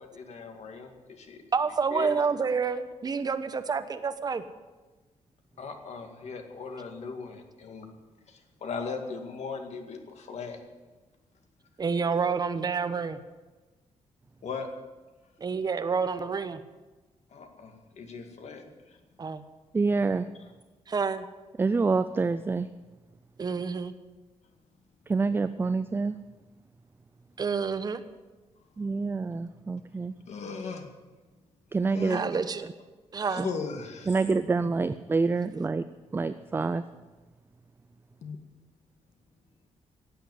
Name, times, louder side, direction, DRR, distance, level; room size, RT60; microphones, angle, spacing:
voice 1, 0.0-1.4 1.7-2.2 5.6-7.9 8.3-10.6 14.4-14.7 17.3-19.0 30.3-30.9 31.9-32.2 33.2-34.2 34.6-34.7 38.2-38.4, left 5 dB, 65° left, 5 dB, 2.1 m, -38 dB
voice 2, 1.5-4.4 11.8-13.2 15.4-16.6 19.2-19.4 20.9-21.2 23.4-23.9 27.4-28.0 32.1-32.7 33.1-33.5, right 5 dB, 35° right, 10 dB, 0.9 m, -28 dB
voice 3, 19.7-20.3 21.6-22.7 25.1-26.2 28.8-30.1 31.7-32.2 33.4-33.5 34.1-35.8 36.1-36.8, right 4 dB, 20° right, 12 dB, 0.4 m, -27 dB
16.0 x 8.3 x 9.5 m, 1.2 s
wide cardioid pair, 150°, 12 cm